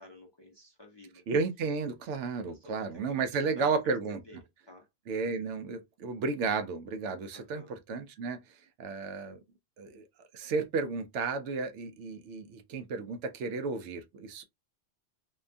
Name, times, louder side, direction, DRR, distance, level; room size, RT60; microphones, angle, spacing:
voice 1, 0.0-1.2 2.4-4.0 4.2-4.9 7.3-7.7, left 1 dB, 30° left, 0.5 m, -52 dB
voice 2, 1.3-4.2 5.1-9.4 9.8-14.4, right 4 dB, 85° right, 0.9 m, -33 dB
2.7 x 2.2 x 2.5 m
omnidirectional pair, 1.2 m